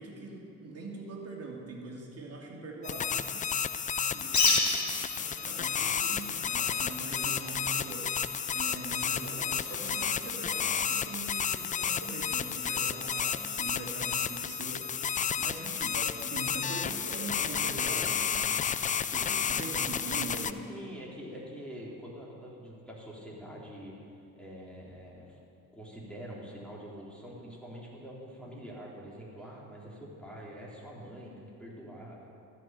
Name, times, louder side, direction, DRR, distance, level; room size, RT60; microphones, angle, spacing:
voice 1, 0.0-3.4 4.1-8.1 8.5-14.9 15.4-18.6 19.0-20.6, right 2 dB, 35° right, -1 dB, 2.9 m, -42 dB
sound 1, 2.8-20.5, left 7 dB, 20° left, 0.4 m, -32 dB
Bird, 4.2-10.9, left 3 dB, 40° left, 2.8 m, -34 dB
voice 2, 20.5-23.9 24.4-25.4 25.7-32.3, equal, ahead, -5 dB, 3.8 m, -45 dB
13.5 x 6.5 x 9.1 m, 2.6 s
hypercardioid pair, 60°, 43 cm